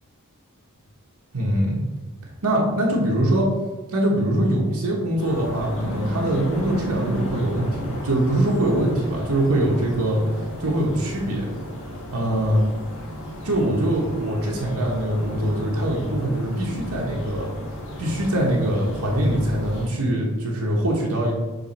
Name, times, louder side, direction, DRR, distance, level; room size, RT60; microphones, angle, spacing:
voice 1, 1.3-1.8 2.4-3.5 3.9-10.2 10.6-11.5 12.1-12.6 13.4-17.5 18.0-21.3, right 1 dB, 85° right, -2 dB, 1.2 m, -23 dB
sound 1, 5.2-19.9, equal, 60° left, 1.7 m, -33 dB
6.9 x 3.4 x 4.2 m, 1.2 s
head